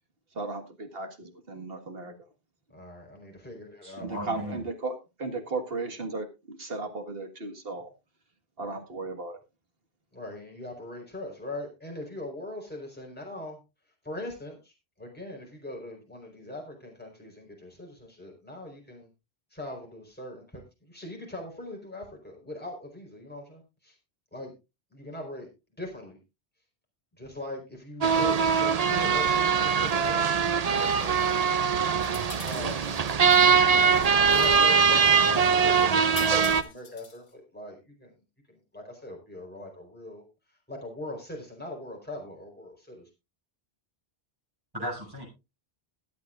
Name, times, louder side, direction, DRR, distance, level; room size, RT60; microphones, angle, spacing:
voice 1, 0.4-2.2 4.0-7.9 8.6-9.4, right 3 dB, 65° right, 6 dB, 2.0 m, -35 dB
voice 2, 2.7-4.1 10.1-13.6 14.0-19.1 19.5-23.9 24.3-24.5 24.9-25.5 25.8-26.2 27.2-31.5 32.4-32.9 33.6-38.1 38.5-40.3 40.7-43.1, left 1 dB, 10° left, -1 dB, 4.2 m, -41 dB
voice 3, 3.8-4.6 44.7-45.3, equal, 20° right, -1 dB, 6.5 m, -36 dB
sound 1, 28.0-36.6, right 6 dB, 45° right, 0.7 m, -22 dB
sound 2, 32.0-33.5 33.8-34.6 36.2-37.3, left 4 dB, 75° left, 1.5 m, -44 dB
21.0 x 8.3 x 2.5 m, 0.26 s
omnidirectional pair, 1.1 m